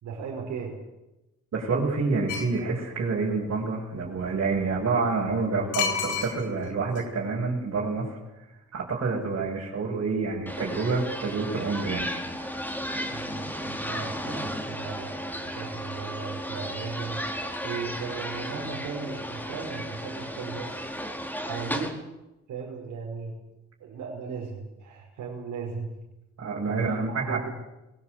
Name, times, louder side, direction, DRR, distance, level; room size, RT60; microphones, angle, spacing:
voice 1, 0.0-0.8 13.0-21.0 21.4-22.0 22.5-23.4 23.8-25.9 26.7-27.5, right 5 dB, 80° right, -2 dB, 5.2 m, -37 dB
voice 2, 1.5-8.2 8.7-12.1 12.4-12.6 26.4-27.4, right 4 dB, 50° right, -5 dB, 6.7 m, -28 dB
sound 1, 2.3-2.6 5.7-6.7 7.0-7.1, left 6 dB, 90° left, 3.5 m, -29 dB
sound 2, 10.5-21.9, equal, 5° left, 4.8 m, -34 dB
22.0 x 19.0 x 8.0 m, 0.99 s
cardioid pair, 90°, 30 cm